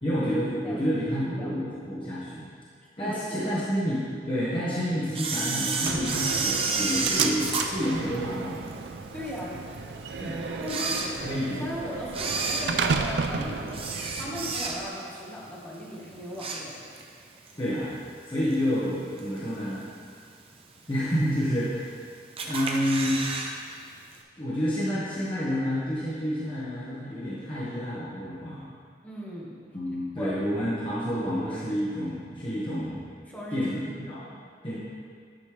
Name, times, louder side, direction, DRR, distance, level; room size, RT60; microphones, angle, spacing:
voice 1, 0.0-2.4 3.0-8.6 10.2-10.4 11.2-11.7 17.6-17.9 18.3-19.8 20.9-21.9 22.4-23.2 24.4-28.7 29.7-33.0 33.5-34.2 34.6-34.8, equal, 30° left, -10 dB, 1.5 m, -29 dB
voice 2, 1.2-1.6 3.0-3.6 9.1-9.6 10.6-16.8 29.0-29.6 30.2-30.8 33.3-33.7, equal, 10° left, -7 dB, 1.5 m, -38 dB
Camera, 5.1-8.7 9.2-9.3 10.0-10.1 10.6-11.6 12.1-15.1 15.4-15.7 16.1-17.1 17.5-17.6 18.5-18.6 19.2-19.6 20.0-20.1 20.3-20.4 20.6-20.7 21.4-21.9 22.4-23.5 23.8-23.9 24.1-24.2, right 4 dB, 35° right, 0.7 m, -30 dB
Slam, 5.9-14.9, right 5 dB, 70° right, 0.4 m, -33 dB
10.5 x 5.4 x 3.3 m, 2.1 s
head